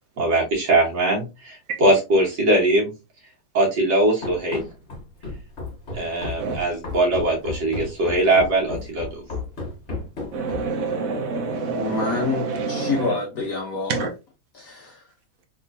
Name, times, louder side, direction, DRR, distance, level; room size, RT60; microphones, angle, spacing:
voice 1, 0.2-2.9 3.5-4.6 5.9-9.2, right 1 dB, 80° right, 1.9 m, -21 dB
Run, 4.2-10.8, left 3 dB, 40° left, 1.4 m, -33 dB
voice 2, 10.3-13.2 13.9-14.1, right 4 dB, 60° right, 1.2 m, -27 dB
voice 3, 11.7-14.1 14.5-15.1, left 4 dB, 60° left, 1.1 m, -28 dB
3.7 x 3.0 x 2.6 m
omnidirectional pair, 1.9 m